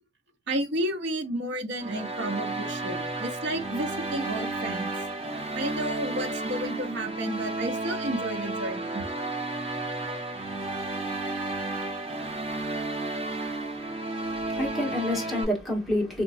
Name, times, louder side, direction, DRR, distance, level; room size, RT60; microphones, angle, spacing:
voice 1, 0.5-4.9 5.5-9.0, right 1 dB, 65° right, 0.9 m, -32 dB
sound 1, 1.8-15.4, right 2 dB, 35° right, 1.2 m, -32 dB
voice 2, 14.2-16.2, left 1 dB, ahead, 1.4 m, -28 dB
3.3 x 3.1 x 2.6 m
head